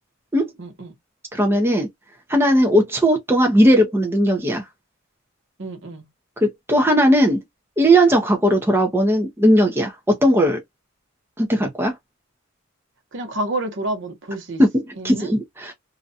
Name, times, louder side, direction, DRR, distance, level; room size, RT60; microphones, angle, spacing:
voice 1, 0.6-0.9 5.6-6.0 13.1-14.6 15.0-15.3, right 1 dB, 60° right, 0.9 m, -29 dB
voice 2, 1.3-1.9 2.3-4.6 6.4-7.4 7.8-10.6 11.4-11.9 14.6-15.7, equal, 10° right, 0.5 m, -17 dB
2.5 x 2.2 x 2.6 m
head